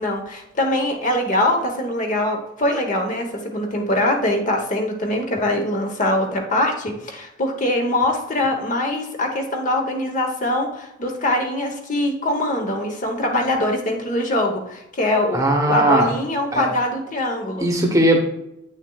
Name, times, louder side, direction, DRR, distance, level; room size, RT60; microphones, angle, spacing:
voice 1, 0.0-17.7, left 1 dB, 40° left, 3 dB, 1.0 m, -23 dB
voice 2, 15.3-16.1 16.5-16.7 17.6-18.2, right 1 dB, 15° right, 2 dB, 0.9 m, -18 dB
8.8 x 6.3 x 2.3 m, 0.86 s
head